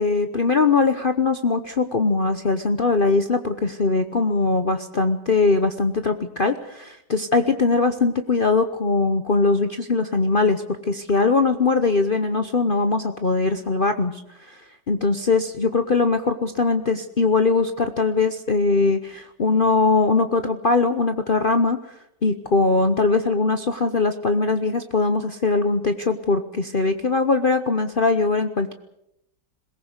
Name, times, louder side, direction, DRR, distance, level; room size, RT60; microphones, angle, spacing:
voice 1, 0.0-14.6 14.9-21.8 22.2-28.7, left 3 dB, 40° left, 8 dB, 0.9 m, -21 dB
21.0 x 18.0 x 8.1 m, 0.81 s
omnidirectional pair, 1.8 m